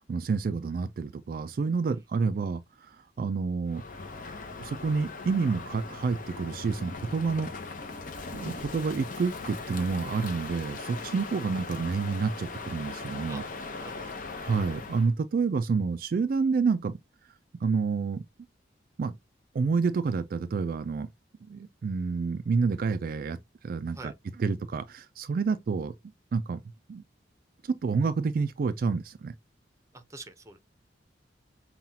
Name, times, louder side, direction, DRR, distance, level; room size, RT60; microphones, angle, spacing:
voice 1, 0.0-3.8 4.6-7.5 8.3-13.4 14.4-17.0 17.6-18.2 19.0-19.2 19.5-21.1 21.5-24.1 24.4-25.9 26.3-26.6 26.9-27.0 27.6-29.3, right 4 dB, 50° right, 0.3 m, -29 dB
Crow, 3.7-15.1, left 3 dB, 50° left, 0.8 m, -40 dB
voice 2, 13.8-14.2 23.9-24.1 29.9-30.6, right 3 dB, 15° right, 0.7 m, -45 dB
5.6 x 2.3 x 2.7 m
head